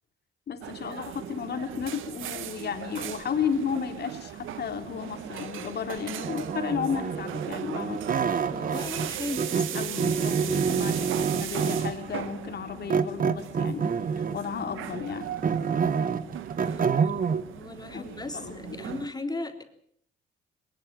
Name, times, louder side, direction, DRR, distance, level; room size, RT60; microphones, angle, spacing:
voice 1, 0.5-8.1 9.8-15.3 17.9-18.8, left 7 dB, 55° left, 6 dB, 3.6 m, -33 dB
sound 1, 0.6-19.1, right 11 dB, 85° right, 1.6 m, -38 dB
sound 2, 6.2-9.1 9.4-12.1 12.9-14.5 14.9-17.4, right 6 dB, 45° right, 1.5 m, -27 dB
voice 2, 8.5-10.4 10.7-10.9 16.6-19.6, left 2 dB, 20° left, 6 dB, 3.5 m, -38 dB
22.0 x 21.0 x 7.6 m, 0.63 s
cardioid pair, 90°, 20 cm